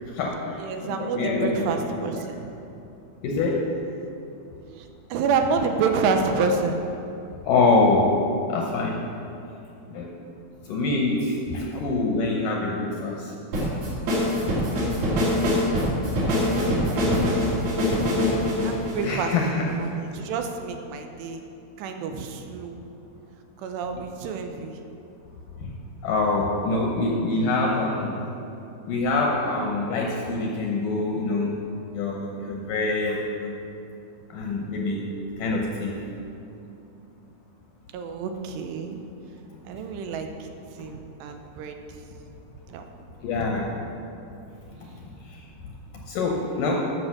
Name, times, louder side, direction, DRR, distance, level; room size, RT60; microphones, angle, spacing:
voice 1, 0.0-2.0 3.2-3.7 7.4-8.2 8.5-9.1 9.9-10.1 10.7-13.8 14.6-14.7 19.0-19.7 25.6-25.7 26.0-28.3 28.8-31.6 31.9-33.6 34.3-35.1 35.4-36.0 39.7-39.8 43.2-43.9 44.8-44.9 45.3-45.4 46.0-46.9, left 3 dB, 75° left, -1 dB, 2.0 m, -25 dB
voice 2, 0.6-2.6 4.8-6.9 16.5-17.6 18.6-21.4 21.8-22.8 23.6-24.8 37.9-39.0 39.6-40.3 40.8-41.8 42.7-42.9 44.8-45.0, right 5 dB, 90° right, 5 dB, 3.0 m, -28 dB
sound 1, 13.5-19.8, left 1 dB, 60° right, 4.3 m, -23 dB
12.5 x 6.6 x 5.9 m, 2.7 s
omnidirectional pair, 4.8 m